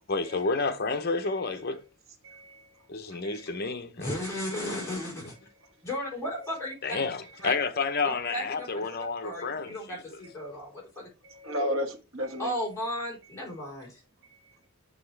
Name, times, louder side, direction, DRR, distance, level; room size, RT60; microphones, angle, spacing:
voice 1, 0.1-1.8 2.9-4.1 6.8-9.8, left 4 dB, 45° left, 0.8 m, -30 dB
voice 2, 2.2-2.6 3.2-3.5 9.2-9.3 11.2-12.5, equal, 60° right, 1.4 m, -33 dB
voice 3, 4.0-5.3 5.8-7.0 7.4-7.5 8.0-8.8 9.2-11.1 12.4-14.0, left 1 dB, 15° left, 4.0 m, -35 dB
6.8 x 5.7 x 3.3 m
head